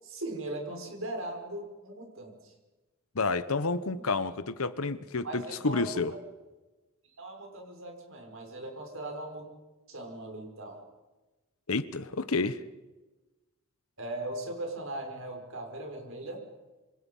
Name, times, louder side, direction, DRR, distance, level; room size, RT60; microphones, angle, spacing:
voice 1, 0.0-2.5 5.2-6.2 7.2-9.5 9.9-10.8 14.0-16.4, right 1 dB, 65° right, 5.8 m, -39 dB
voice 2, 3.1-6.1 11.7-12.6, left 3 dB, 75° left, 1.1 m, -30 dB
26.5 x 25.5 x 5.6 m
head